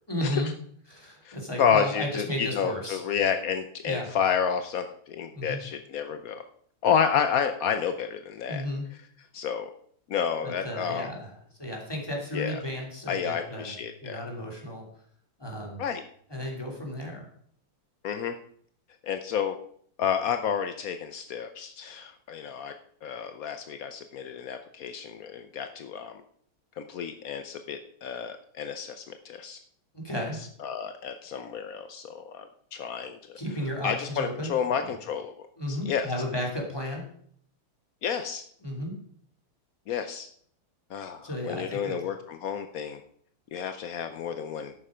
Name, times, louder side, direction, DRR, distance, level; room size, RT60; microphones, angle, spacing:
voice 1, 0.1-0.5 0.9-3.0 3.8-4.1 5.3-5.6 8.5-8.9 10.4-11.3 11.6-13.7 14.0-14.9 15.4-15.8 16.3-17.3 29.9-30.4 33.4-34.5 34.8-34.9 35.6-37.0 38.6-38.9 41.2-42.0, left 1 dB, 10° left, 0 dB, 2.8 m, -33 dB
voice 2, 1.2-6.4 6.8-8.6 9.3-9.7 10.1-11.1 12.3-12.6 13.1-14.2 15.8-16.0 18.0-18.4 19.0-19.6 20.0-22.7 23.0-26.2 26.8-29.6 30.6-33.4 33.8-36.1 38.0-38.4 39.9-40.3 40.9-43.0 43.5-44.7, left 7 dB, 75° left, 8 dB, 0.8 m, -30 dB
11.0 x 8.6 x 5.0 m, 0.62 s
omnidirectional pair, 2.4 m